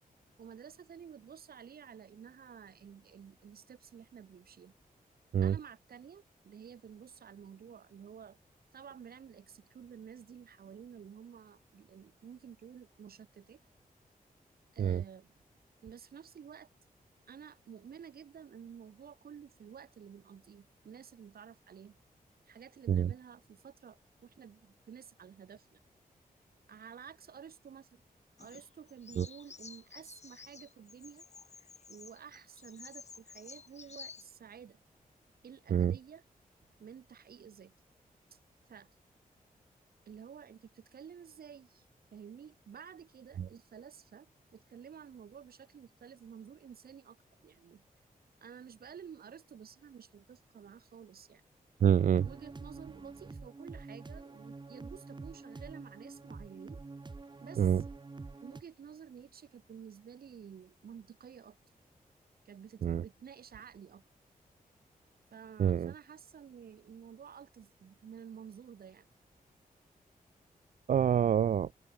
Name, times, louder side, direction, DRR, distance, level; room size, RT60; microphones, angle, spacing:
voice 1, 0.4-4.7 5.4-8.4 8.7-13.6 14.7-15.3 15.8-16.7 17.3-22.0 22.5-25.8 26.7-28.0 28.4-31.2 31.9-34.8 35.4-36.2 36.8-37.7 38.3-38.4 38.7-38.9 40.1-41.9 42.1-47.2 47.4-47.8 48.4-51.4 52.2-56.8 57.4-57.8 58.4-61.6 62.5-64.0 65.3-69.1, right 7 dB, 85° right, 3.6 m, -51 dB
Bird vocalization bird call bird song, 28.4-34.2, left 5 dB, 45° left, 1.8 m, -52 dB
sound 1, 51.8-58.6, right 3 dB, 30° right, 2.1 m, -47 dB
voice 2, 51.8-52.3 57.6-57.8 62.8-63.0 65.6-65.9 70.9-71.7, right 9 dB, 60° right, 0.4 m, -26 dB
open air
wide cardioid pair, 120°, 15 cm